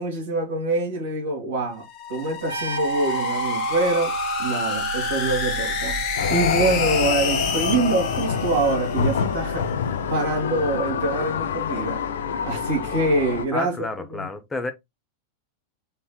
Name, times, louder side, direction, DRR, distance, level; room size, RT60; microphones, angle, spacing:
voice 1, 0.0-1.8 2.1-4.1 4.4-12.0 12.5-14.3, right 2 dB, 60° right, 2.0 m, -25 dB
sound 1, 1.8-9.2, left 6 dB, 40° left, 0.9 m, -29 dB
sound 2, 2.4-9.9, right 5 dB, 75° right, 0.5 m, -32 dB
sound 3, 6.2-13.4, left 6 dB, 60° left, 0.5 m, -26 dB
voice 2, 13.5-14.7, left 2 dB, 15° left, 0.6 m, -30 dB
4.4 x 3.3 x 2.2 m
figure-of-eight pair, 90°, 0 cm